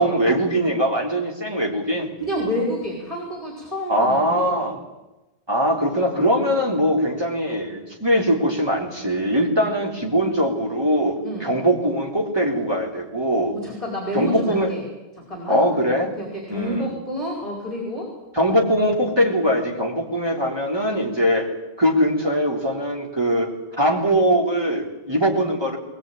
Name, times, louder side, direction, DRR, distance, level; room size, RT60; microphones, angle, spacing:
voice 1, 0.0-2.1 3.9-4.7 5.5-11.2 11.4-13.5 14.1-14.7 15.5-16.1 16.5-16.8 18.3-21.5 21.8-23.5 23.8-25.8, equal, 20° right, 0 dB, 3.7 m, -21 dB
voice 2, 2.2-4.4 11.2-11.5 13.5-14.8 15.2-15.6 16.2-18.1, equal, 30° left, -1 dB, 4.9 m, -28 dB
21.0 x 20.5 x 9.2 m, 1.0 s
omnidirectional pair, 1.2 m